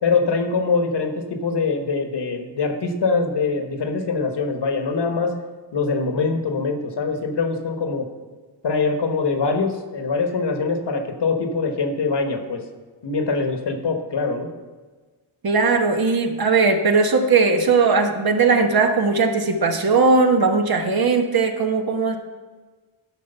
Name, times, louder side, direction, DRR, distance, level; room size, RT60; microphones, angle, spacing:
voice 1, 0.0-5.3 5.7-8.1 8.6-12.6 13.0-14.5, left 4 dB, 60° left, 5 dB, 1.3 m, -23 dB
voice 2, 15.4-22.2, right 4 dB, 50° right, 4 dB, 1.2 m, -18 dB
11.5 x 4.6 x 6.7 m, 1.3 s
cardioid pair, 95°, 47 cm